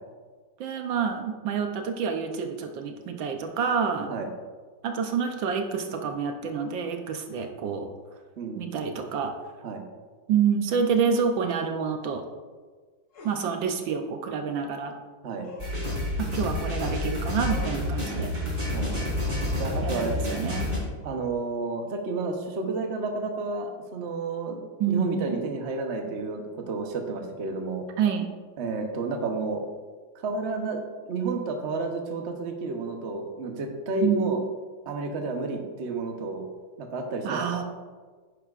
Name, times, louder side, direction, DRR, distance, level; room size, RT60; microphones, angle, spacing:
voice 1, 0.6-4.1 4.8-7.9 8.6-9.3 10.3-12.2 13.2-14.9 16.2-18.3 19.8-20.7 24.8-25.4 28.0-28.3 34.0-34.3 37.2-37.6, right 6 dB, 70° right, 5 dB, 1.3 m, -28 dB
voice 2, 8.4-8.8 9.6-9.8 15.2-15.5 18.7-19.1 19.6-20.2 21.0-24.6 24.9-27.8 28.6-29.6 30.1-34.4 34.9-36.5 36.8-37.6, right 3 dB, 50° right, 3 dB, 0.8 m, -31 dB
sound 1, 13.1-13.4 15.4-15.8 17.4-17.8 19.1-19.8, equal, 75° left, 2.3 m, -44 dB
sound 2, 15.6-20.8, left 1 dB, 20° right, 3.0 m, -29 dB
9.9 x 9.9 x 2.4 m, 1.4 s
omnidirectional pair, 2.4 m